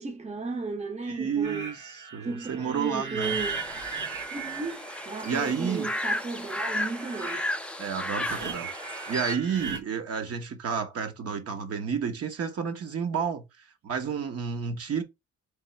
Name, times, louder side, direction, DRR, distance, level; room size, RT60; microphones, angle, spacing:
voice 1, 0.0-1.7 2.2-3.6 4.3-7.5, right 3 dB, 20° right, 0.8 m, -35 dB
voice 2, 1.0-3.4 5.2-5.9 7.8-8.7 9.1-13.4 13.8-15.0, right 6 dB, 55° right, 1.1 m, -30 dB
sound 1, 1.4-9.8, right 5 dB, 80° right, 1.2 m, -38 dB
sound 2, 3.2-9.4, left 1 dB, 5° left, 0.5 m, -34 dB
3.5 x 3.1 x 4.3 m
cardioid pair, 90°, 30 cm